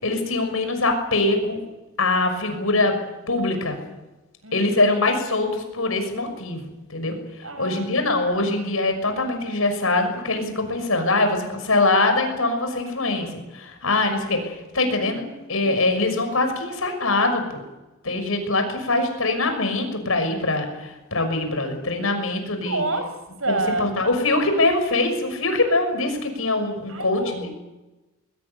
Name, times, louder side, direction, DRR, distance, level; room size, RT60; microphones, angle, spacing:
voice 1, 0.0-1.6 2.0-3.0 3.3-3.8 4.5-7.2 7.6-13.3 13.5-15.2 15.5-17.6 18.0-22.8 23.5-27.5, left 2 dB, 85° left, 7 dB, 6.2 m, -23 dB
voice 2, 2.6-2.9 3.1-3.6 4.4-4.9 7.4-8.1 14.8-16.1 21.9-22.1 22.6-23.9 26.9-27.5, right 2 dB, 85° right, 8 dB, 5.6 m, -31 dB
22.0 x 20.5 x 8.3 m, 1.1 s
head